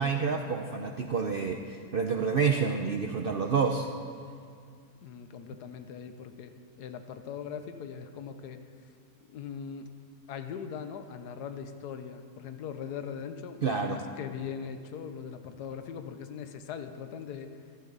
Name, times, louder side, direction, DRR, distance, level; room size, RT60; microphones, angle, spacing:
voice 1, 0.0-3.9 13.6-14.0, right 5 dB, 80° right, 4 dB, 0.5 m, -28 dB
voice 2, 5.0-6.5 6.8-8.6 9.3-9.9 10.3-17.5, left 7 dB, 75° left, 8 dB, 1.4 m, -40 dB
15.0 x 14.0 x 4.0 m, 2.2 s
omnidirectional pair, 1.8 m